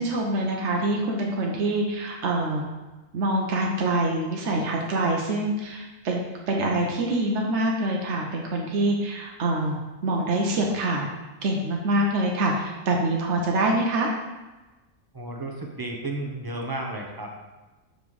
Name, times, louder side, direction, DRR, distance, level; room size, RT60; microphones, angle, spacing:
voice 1, 0.0-2.6 3.1-6.2 6.5-9.8 10.0-11.0 11.4-14.1, right 2 dB, 65° right, 0 dB, 1.1 m, -25 dB
voice 2, 15.1-17.3, right 2 dB, 20° right, 1 dB, 0.7 m, -33 dB
6.9 x 4.0 x 4.7 m, 1.1 s
omnidirectional pair, 1.3 m